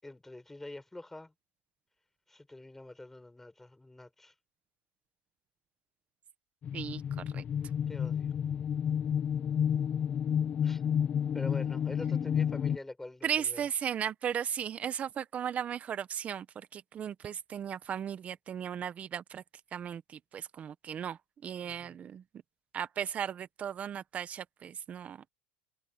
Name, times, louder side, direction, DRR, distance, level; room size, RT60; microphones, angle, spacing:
voice 1, 0.0-1.3 2.3-4.3 7.9-8.3 10.6-10.8 11.3-13.6 21.6-22.0, left 2 dB, 5° left, 5.4 m, -46 dB
sound 1, 6.6-12.8, left 8 dB, 30° left, 0.7 m, -30 dB
voice 2, 6.7-7.4 12.1-12.2 13.2-19.4 19.7-22.2 22.7-25.2, right 8 dB, 30° right, 1.0 m, -36 dB
supercardioid pair, 145°, 5 cm